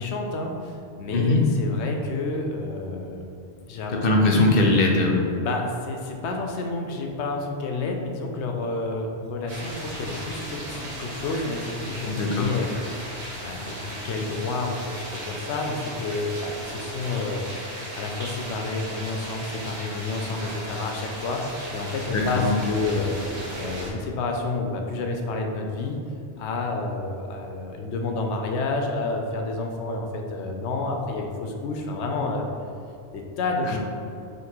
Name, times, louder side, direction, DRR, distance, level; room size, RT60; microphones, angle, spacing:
voice 1, 0.0-3.2 3.7-4.2 5.4-13.0 13.4-17.4 17.9-23.2 23.6-26.0 26.4-32.5 33.1-33.8, left 3 dB, 85° left, 2 dB, 0.9 m, -29 dB
voice 2, 1.1-1.5 3.9-5.2 12.1-12.5 22.1-22.6 33.6-33.8, left 2 dB, 65° left, 0 dB, 0.7 m, -21 dB
sound 1, 9.5-23.9, right 1 dB, 45° right, 1.0 m, -36 dB
3.8 x 2.9 x 4.4 m, 2.6 s
omnidirectional pair, 1.1 m